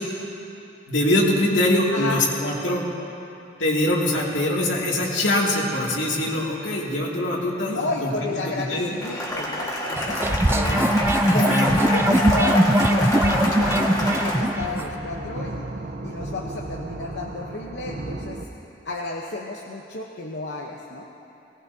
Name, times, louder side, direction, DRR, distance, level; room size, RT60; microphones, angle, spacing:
voice 1, 0.9-2.8 3.6-8.9 10.6-11.7 12.1-12.2, left 1 dB, 85° left, -3 dB, 2.4 m, -23 dB
voice 2, 1.9-2.2 7.7-10.8 11.2-15.7 16.0-18.4 18.8-21.1, left 2 dB, 65° left, -1 dB, 0.9 m, -32 dB
Cheering / Applause, 9.0-14.4, left 1 dB, 20° left, 1.6 m, -26 dB
sound 1, 9.0-18.5, right 1 dB, 60° right, 0.8 m, -37 dB
sound 2, 10.0-14.9, right 1 dB, 10° right, 0.4 m, -21 dB
19.0 x 18.5 x 2.8 m, 2.8 s
head